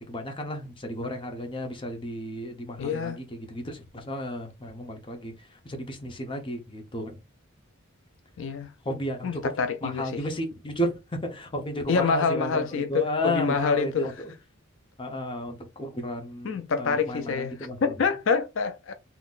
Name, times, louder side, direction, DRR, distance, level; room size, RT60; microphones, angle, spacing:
voice 1, 0.1-5.3 5.6-7.2 8.8-9.4 9.8-10.9 11.3-14.3 15.0-17.8, equal, 25° left, 0.8 m, -33 dB
voice 2, 2.8-3.2 8.4-8.7 9.2-10.1 11.9-14.1 16.4-18.9, left 5 dB, 65° left, 0.4 m, -26 dB
3.8 x 2.9 x 2.4 m
head